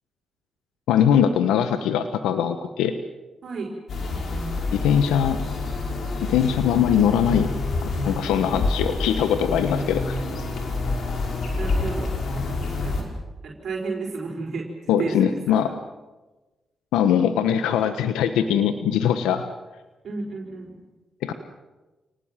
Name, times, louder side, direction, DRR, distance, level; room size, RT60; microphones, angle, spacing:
voice 1, 0.9-3.0 4.7-5.4 6.3-7.5 7.8-10.2 14.9-15.7 16.9-19.5 21.2-21.3, left 9 dB, 90° left, 10 dB, 1.2 m, -21 dB
sound 1, 3.9-13.0, left 3 dB, 70° left, 5.7 m, -27 dB
voice 2, 11.6-12.2 12.6-13.1 13.4-14.7 15.0-15.7 20.0-20.7, right 4 dB, 65° right, -1 dB, 4.9 m, -32 dB
28.5 x 19.5 x 7.5 m, 1.1 s
supercardioid pair, 50°, 0 cm